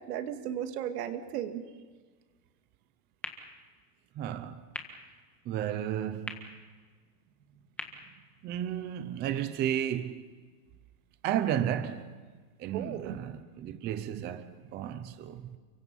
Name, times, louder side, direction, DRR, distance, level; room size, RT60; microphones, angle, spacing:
voice 1, 0.0-1.7 12.7-13.2, right 10 dB, 80° right, 2.3 m, -35 dB
sound 1, 3.2-9.2, left 2 dB, 5° left, 1.6 m, -47 dB
voice 2, 4.2-4.6 5.5-6.5 8.4-10.2 11.2-12.1 12.6-15.4, right 10 dB, 20° right, 0.7 m, -33 dB
30.0 x 24.0 x 5.5 m
supercardioid pair, 165°, 46 cm